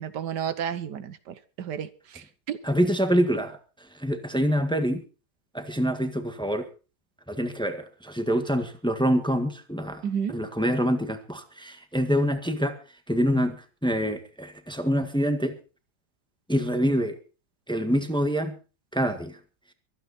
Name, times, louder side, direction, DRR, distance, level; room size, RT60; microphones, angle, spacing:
voice 1, 0.0-2.6 10.0-10.4, right 8 dB, 75° right, 1.5 m, -32 dB
voice 2, 2.6-3.6 3.9-5.0 5.5-6.7 7.3-12.8 13.1-15.6 16.5-17.2 17.7-18.6 18.9-19.4, equal, 5° left, 1.5 m, -26 dB
23.5 x 9.6 x 4.2 m
omnidirectional pair, 1.9 m